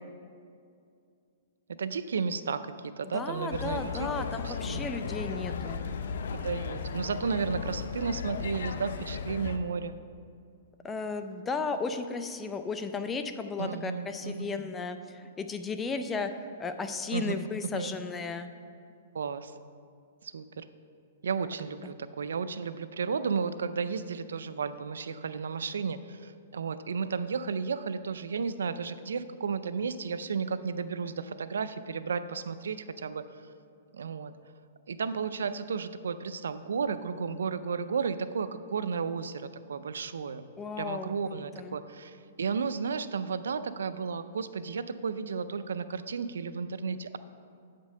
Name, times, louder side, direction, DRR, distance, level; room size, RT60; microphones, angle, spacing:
voice 1, 1.8-4.1 4.4-5.0 6.3-10.0 13.6-14.5 17.1-17.3 17.7-17.9 19.1-19.5 20.2-20.6 21.2-33.2 33.9-34.3 34.9-40.4 40.8-47.2, right 5 dB, 90° right, 13 dB, 0.4 m, -33 dB
voice 2, 3.0-5.9 10.8-16.3 16.6-18.5 21.8-21.9 40.6-41.8, left 4 dB, 15° left, 8 dB, 0.4 m, -35 dB
sound 1, 3.5-9.6, left 5 dB, 70° left, 0.6 m, -35 dB
8.1 x 5.2 x 6.5 m, 2.4 s
hypercardioid pair, 150°, 0 cm